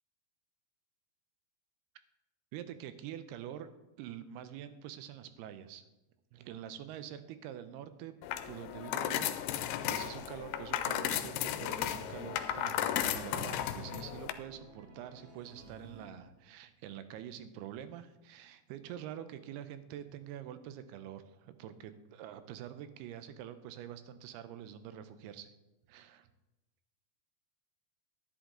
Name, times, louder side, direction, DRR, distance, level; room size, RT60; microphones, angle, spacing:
voice 1, 2.5-3.7 4.0-5.8 6.3-8.1 8.5-25.5 25.9-26.3, right 10 dB, 90° right, 11 dB, 2.7 m, -46 dB
sound 1, 8.2-14.3, left 11 dB, 90° left, 2.6 m, -35 dB
sound 2, 9.8-16.1, right 3 dB, 50° right, 1.9 m, -54 dB
10.5 x 10.5 x 3.8 m, 1.0 s
omnidirectional pair, 4.5 m